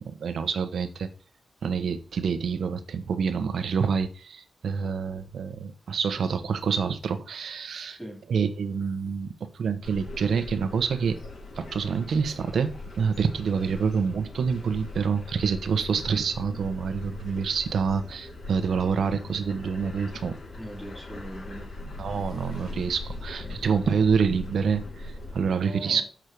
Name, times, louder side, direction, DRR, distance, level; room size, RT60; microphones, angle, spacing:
voice 1, 0.0-1.1 1.6-8.0 8.3-11.2 11.6-20.4 22.0-26.0, right 6 dB, 80° right, 1.1 m, -27 dB
voice 2, 7.9-8.2 20.6-21.7 23.4-23.6 25.6-26.0, right 1 dB, 5° left, 3.2 m, -40 dB
sound 1, 9.8-25.4, left 2 dB, 80° left, 5.0 m, -40 dB
7.3 x 6.3 x 6.8 m
wide cardioid pair, 150°, 0 cm